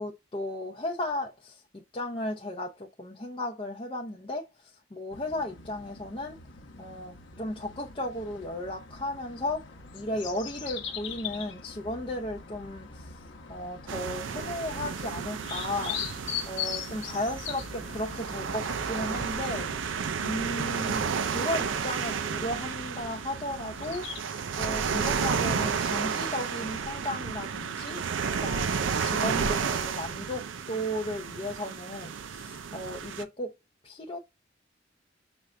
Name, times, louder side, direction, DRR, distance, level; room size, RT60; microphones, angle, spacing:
voice 1, 0.0-6.4 6.8-13.1 13.5-19.7 20.2-28.0 28.3-33.5 33.8-34.2, left 1 dB, 25° left, 0.6 m, -35 dB
sound 1, 5.1-24.2, left 7 dB, 70° left, 0.9 m, -42 dB
sound 2, 13.9-33.2, right 6 dB, 75° right, 0.5 m, -32 dB
6.1 x 2.5 x 3.2 m
head